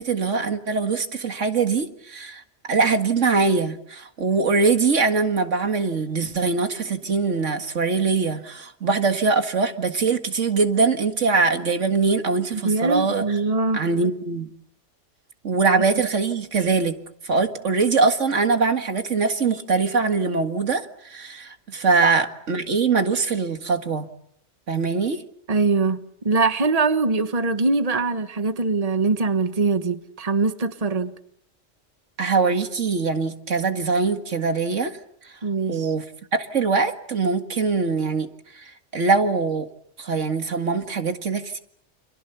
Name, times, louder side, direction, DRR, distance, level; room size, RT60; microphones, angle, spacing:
voice 1, 0.0-13.2 13.7-14.5 15.4-17.0 17.2-24.1 24.7-25.2 32.2-35.0 35.2-35.3 35.7-36.0 36.3-38.3 38.5-39.7 40.0-41.6, right 4 dB, 85° right, 2.2 m, -22 dB
voice 2, 12.6-13.8 22.0-22.1 25.5-31.1 35.4-35.9, right 3 dB, 35° right, 1.4 m, -22 dB
29.5 x 27.0 x 6.9 m
omnidirectional pair, 1.2 m